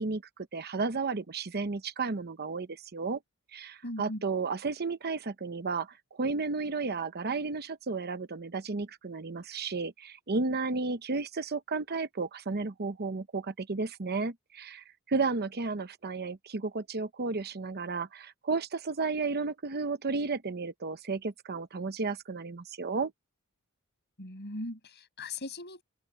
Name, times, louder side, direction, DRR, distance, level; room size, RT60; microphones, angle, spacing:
voice 1, 0.0-3.2 3.5-23.1, right 4 dB, 45° right, 0.9 m, -33 dB
voice 2, 3.8-4.2 24.2-25.8, left 2 dB, 50° left, 6.7 m, -39 dB
open air
head